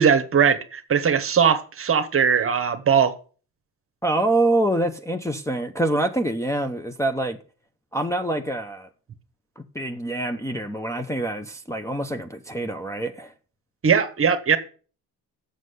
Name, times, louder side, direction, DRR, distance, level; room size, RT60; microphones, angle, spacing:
voice 1, 0.0-3.1 13.8-14.6, right 7 dB, 35° right, 1.1 m, -20 dB
voice 2, 4.0-7.4 7.9-8.9 9.6-13.3, right 1 dB, 10° left, 0.7 m, -25 dB
7.4 x 6.5 x 8.0 m
cardioid pair, 130°, 39 cm